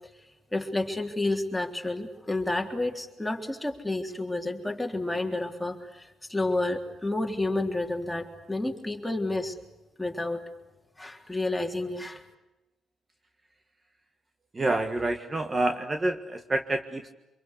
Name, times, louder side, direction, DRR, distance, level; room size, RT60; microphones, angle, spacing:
voice 1, 0.5-9.5 10.0-10.4 11.0-12.2, left 2 dB, 5° left, 2 dB, 3.5 m, -30 dB
voice 2, 14.5-17.1, right 2 dB, 25° right, 6 dB, 1.7 m, -28 dB
26.0 x 23.0 x 8.3 m, 1.0 s
cardioid pair, 90°, 0 cm